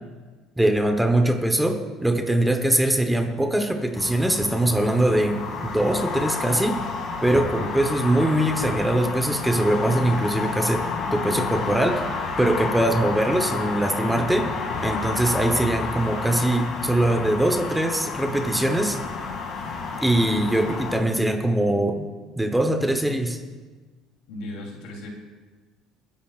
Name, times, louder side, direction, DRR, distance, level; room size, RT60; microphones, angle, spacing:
voice 1, 0.6-6.8 7.2-12.0 12.4-14.5 14.8-19.0 20.0-22.1 22.4-23.4, right 1 dB, 5° right, 5 dB, 1.0 m, -22 dB
sound 1, 3.9-21.0, left 4 dB, 45° left, 2.4 m, -30 dB
voice 2, 24.3-25.1, left 1 dB, 80° left, 0 dB, 3.2 m, -36 dB
30.0 x 10.0 x 2.5 m, 1.3 s
cardioid pair, 140°, 0 cm